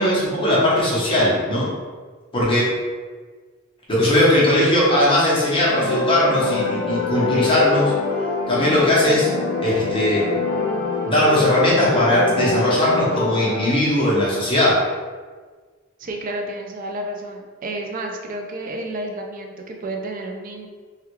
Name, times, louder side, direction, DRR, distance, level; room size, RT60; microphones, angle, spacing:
voice 1, 0.0-1.7 2.3-2.7 3.9-7.9 8.5-9.3 9.6-10.3 11.0-14.8, left 1 dB, 25° left, -7 dB, 0.9 m, -19 dB
sound 1, 5.7-13.7, left 3 dB, 75° left, 0.7 m, -24 dB
voice 2, 16.0-20.7, right 1 dB, 40° right, 2 dB, 0.4 m, -31 dB
3.4 x 2.2 x 3.0 m, 1.5 s
head